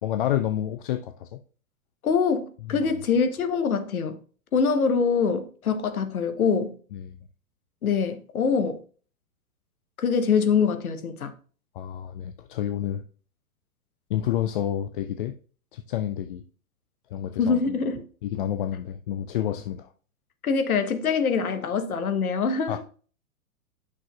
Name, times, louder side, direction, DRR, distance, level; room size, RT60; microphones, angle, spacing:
voice 1, 0.0-1.4 2.7-2.9 6.9-7.2 11.7-13.0 14.1-15.3 15.7-16.4 17.1-17.6 18.2-19.9 22.7-22.8, left 11 dB, 40° left, 0.4 m, -29 dB
voice 2, 2.0-4.2 4.5-6.7 7.8-8.8 10.0-11.3 17.4-18.0 20.4-22.8, left 5 dB, 70° left, 1.1 m, -24 dB
9.4 x 6.1 x 2.3 m
figure-of-eight pair, 110°, 44 cm